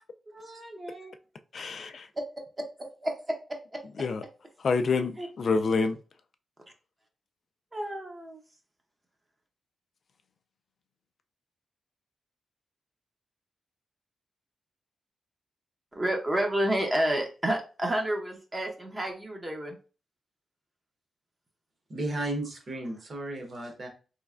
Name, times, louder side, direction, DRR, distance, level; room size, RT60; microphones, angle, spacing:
voice 1, 0.3-1.1 2.2-2.3 2.6-3.8 5.2-5.3 7.7-8.4 15.9-19.8, right 1 dB, 20° right, 0.7 m, -30 dB
voice 2, 1.5-2.1 4.0-4.2 4.6-6.0, left 4 dB, 50° left, 0.3 m, -27 dB
voice 3, 21.9-23.9, right 1 dB, 40° right, 1.1 m, -34 dB
3.3 x 3.1 x 2.4 m
wide cardioid pair, 130°, 0 cm